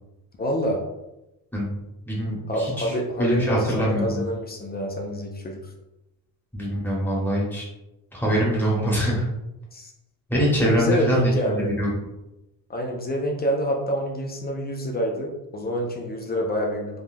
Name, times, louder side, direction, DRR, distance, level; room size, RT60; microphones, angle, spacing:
voice 1, 0.4-0.8 2.5-5.6 9.7-9.9 10.7-11.7 12.7-17.0, equal, 25° left, 1 dB, 0.3 m, -27 dB
voice 2, 2.1-4.2 6.5-7.6 8.1-9.2 10.3-11.9, equal, 5° left, -5 dB, 1.0 m, -24 dB
3.6 x 2.3 x 2.5 m, 0.94 s
cardioid pair, 140°, 41 cm